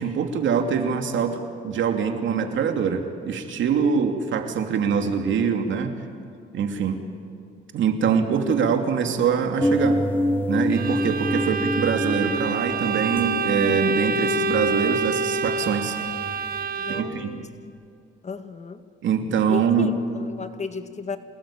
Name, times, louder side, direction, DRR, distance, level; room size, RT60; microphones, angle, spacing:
voice 1, 0.0-5.9 6.5-7.0 7.7-10.0 10.5-16.0 16.9-17.4 19.0-20.0, right 6 dB, 70° right, 5 dB, 2.9 m, -24 dB
sound 1, 9.6-16.6, equal, 10° left, 3.7 m, -27 dB
Bowed string instrument, 10.7-17.3, right 3 dB, 45° right, 1.8 m, -26 dB
voice 2, 16.8-17.5 18.2-18.8 19.5-21.2, left 5 dB, 35° left, 9 dB, 1.8 m, -34 dB
27.0 x 19.5 x 8.9 m, 2.5 s
cardioid pair, 90°, 20 cm